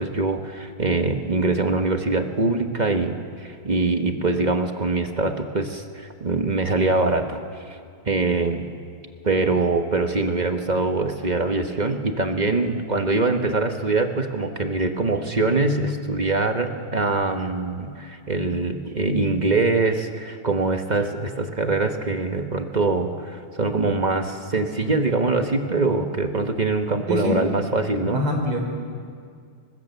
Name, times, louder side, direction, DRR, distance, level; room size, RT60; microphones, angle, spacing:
voice 1, 0.0-7.4 7.7-7.8 8.0-8.7 9.2-28.2, right 3 dB, 30° right, 5 dB, 0.8 m, -23 dB
voice 2, 28.0-28.8, left 1 dB, 70° right, 2 dB, 4.5 m, -25 dB
21.0 x 20.5 x 8.1 m, 2.2 s
omnidirectional pair, 2.4 m